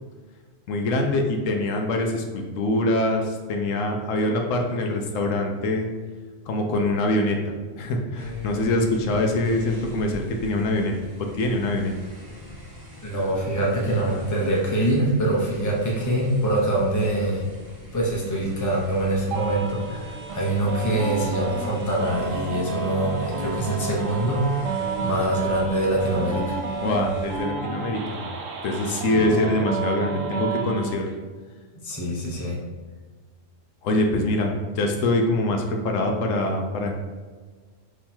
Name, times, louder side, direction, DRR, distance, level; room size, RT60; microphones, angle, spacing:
voice 1, 0.7-5.9 6.5-7.4 7.7-10.9 11.3-11.9 26.8-28.3 28.6-31.1 33.8-36.9, left 1 dB, 80° left, 3 dB, 1.0 m, -24 dB
sound 1, 8.2-27.4, left 1 dB, 20° right, 1.1 m, -41 dB
voice 2, 13.0-17.4 17.9-24.5 25.0-26.6 28.8-29.3 31.8-32.6, right 1 dB, 15° left, -3 dB, 0.7 m, -24 dB
sound 2, 19.3-30.9, right 5 dB, 80° right, 1.0 m, -31 dB
3.6 x 3.0 x 4.3 m, 1.4 s
omnidirectional pair, 1.3 m